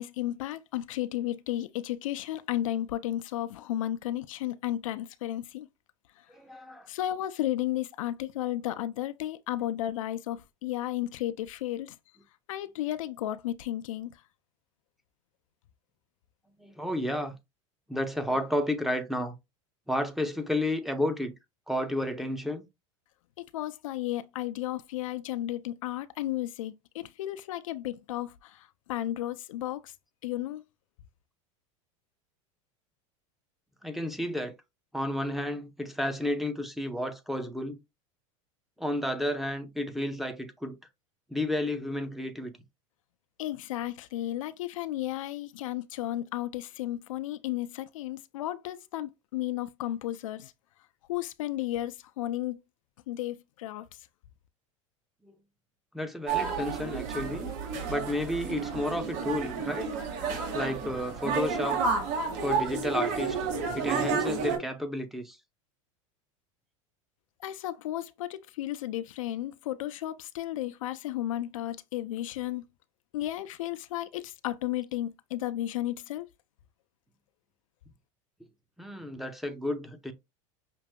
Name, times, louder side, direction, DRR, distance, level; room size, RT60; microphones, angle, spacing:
voice 1, 0.0-5.7 6.9-11.9 12.5-14.1 23.4-29.9 30.2-30.6 43.4-50.5 51.1-52.6 53.1-53.9 67.4-72.6 73.1-76.3, left 14 dB, 80° left, 0.4 m, -33 dB
voice 2, 6.3-6.9 16.6-17.3 17.9-19.3 19.9-21.3 21.7-22.6 33.8-34.5 34.9-37.8 38.8-40.8 41.3-42.5 55.2-55.3 55.9-57.5 57.9-59.9 60.5-61.8 62.4-63.4 63.7-65.4 78.8-80.1, left 1 dB, ahead, 0.7 m, -31 dB
sound 1, 56.3-64.6, right 5 dB, 60° right, 2.1 m, -31 dB
5.9 x 2.6 x 2.2 m
hypercardioid pair, 100°, 17 cm